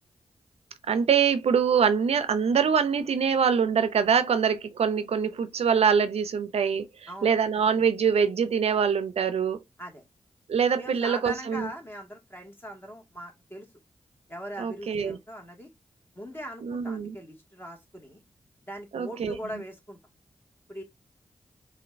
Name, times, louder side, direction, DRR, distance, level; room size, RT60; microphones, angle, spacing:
voice 1, 0.9-9.6 10.5-11.7 14.6-15.2 16.6-17.2 18.9-19.3, right 7 dB, 75° right, 0.5 m, -24 dB
voice 2, 10.8-13.7 14.3-15.7 16.1-18.2 18.6-20.0 20.7-20.8, right 1 dB, 20° left, 1.8 m, -40 dB
5.0 x 2.6 x 2.6 m
cardioid pair, 50°, 11 cm